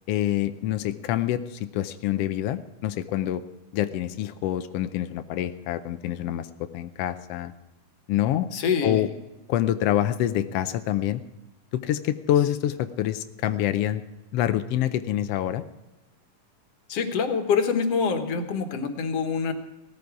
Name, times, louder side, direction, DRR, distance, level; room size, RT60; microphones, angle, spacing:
voice 1, 0.1-3.4 3.7-6.5 6.7-7.5 8.1-8.5 8.8-9.1 9.5-11.2 11.7-14.0 14.3-15.6, left 12 dB, 85° left, 9 dB, 1.3 m, -26 dB
voice 2, 8.5-9.0 16.9-19.5, left 5 dB, 60° left, 6 dB, 2.2 m, -25 dB
18.0 x 14.0 x 4.7 m, 1.0 s
omnidirectional pair, 3.5 m